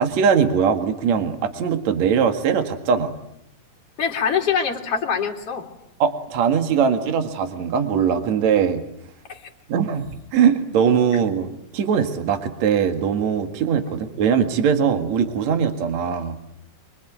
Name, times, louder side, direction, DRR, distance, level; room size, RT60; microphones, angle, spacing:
voice 1, 0.0-3.1 6.0-8.8 9.7-16.3, right 7 dB, 60° right, 7 dB, 3.0 m, -21 dB
voice 2, 4.0-5.7 9.3-9.4, left 6 dB, 50° left, 3 dB, 3.1 m, -23 dB
24.5 x 24.0 x 9.2 m, 0.77 s
omnidirectional pair, 3.7 m